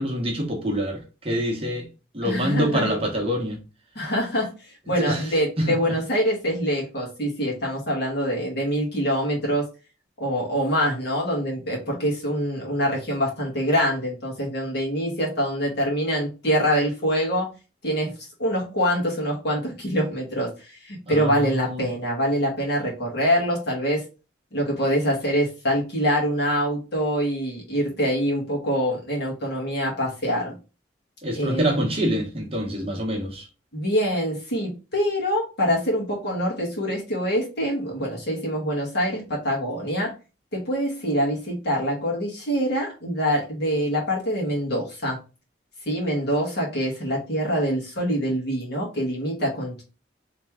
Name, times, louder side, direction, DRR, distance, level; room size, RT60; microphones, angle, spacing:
voice 1, 0.0-1.9 2.1-3.6 5.0-5.3 5.6-5.8 21.1-21.8 31.2-33.5, equal, 30° right, 1.0 m, -26 dB
voice 2, 2.2-2.9 3.9-4.5 4.9-9.7 10.2-17.5 17.8-24.0 24.5-30.6 31.3-31.8 33.7-40.1 40.5-45.2 45.8-49.8, equal, 60° left, 1.6 m, -25 dB
3.3 x 3.1 x 3.5 m
head